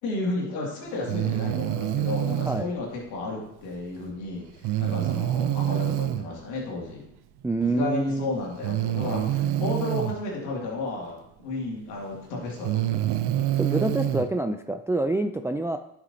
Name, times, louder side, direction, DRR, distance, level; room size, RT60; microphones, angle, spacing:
voice 1, 0.0-7.1 7.6-13.1, left 2 dB, 80° left, -2 dB, 2.4 m, -32 dB
Breathing, 1.1-2.7 4.6-6.2 7.6-7.7 8.6-10.2 11.7-11.8 12.5-14.3, right 12 dB, 60° right, 0.7 m, -26 dB
voice 2, 7.4-8.3 13.5-15.8, right 2 dB, 5° right, 8 dB, 0.3 m, -26 dB
11.0 x 6.0 x 2.8 m, 0.80 s
hypercardioid pair, 55°, 45 cm